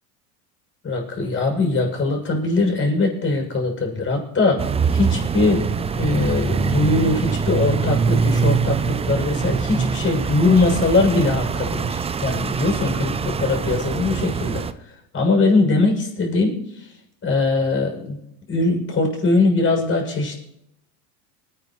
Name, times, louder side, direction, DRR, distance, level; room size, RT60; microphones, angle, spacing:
voice 1, 0.8-5.7 5.9-14.6 15.1-16.9 17.2-18.2 18.5-20.4, left 3 dB, 25° left, 1 dB, 6.8 m, -21 dB
sound 1, 4.6-14.7, right 6 dB, 15° right, 0.5 m, -23 dB
24.5 x 9.7 x 3.2 m, 0.79 s
hypercardioid pair, 100°, 46 cm